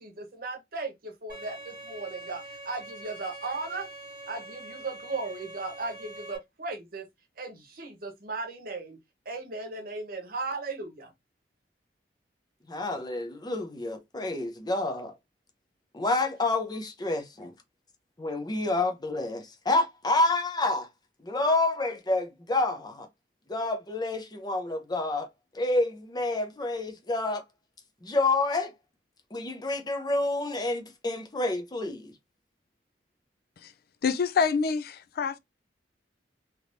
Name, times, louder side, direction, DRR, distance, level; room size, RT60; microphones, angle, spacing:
voice 1, 0.0-3.9 4.3-7.1 7.4-9.0 9.2-11.1, right 3 dB, 55° right, 0.9 m, -36 dB
Bowed string instrument, 1.3-6.4, right 1 dB, 10° right, 1.8 m, -44 dB
voice 2, 12.7-15.2 15.9-17.5 18.2-20.9 21.2-23.1 23.5-25.3 25.5-27.4 28.0-28.7 29.3-32.1, left 2 dB, 25° left, 0.6 m, -28 dB
voice 3, 34.0-35.4, left 5 dB, 55° left, 0.4 m, -26 dB
3.5 x 3.0 x 2.6 m
head